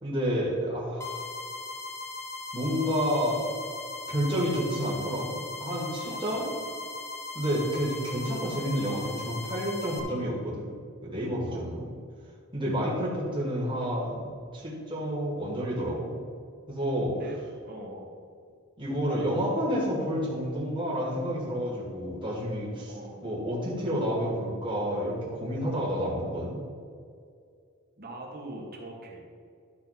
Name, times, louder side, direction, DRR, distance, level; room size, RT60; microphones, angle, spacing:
voice 1, 0.0-1.2 2.5-3.5 4.1-6.4 7.3-10.7 11.0-11.9 12.5-14.2 14.5-16.1 16.7-17.2 18.8-22.9 23.2-26.6, equal, 25° right, -4 dB, 2.3 m, -29 dB
sound 1, 1.0-10.0, left 3 dB, 15° left, 1.0 m, -39 dB
voice 2, 6.1-6.5 11.4-11.7 17.1-17.4 17.6-18.1 22.9-23.3 28.0-29.2, right 1 dB, 45° right, -1 dB, 1.8 m, -42 dB
12.0 x 4.3 x 5.9 m, 2.3 s
head